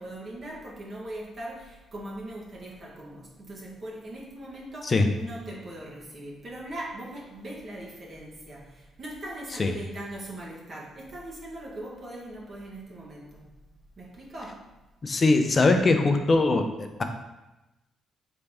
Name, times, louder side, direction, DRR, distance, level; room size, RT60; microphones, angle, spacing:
voice 1, 0.0-13.6 14.0-14.8 15.3-15.4, right 1 dB, 45° right, -4 dB, 1.1 m, -40 dB
voice 2, 15.0-17.0, left 3 dB, 35° left, 6 dB, 0.5 m, -22 dB
3.9 x 3.4 x 3.4 m, 1.0 s
cardioid pair, 90°, 0 cm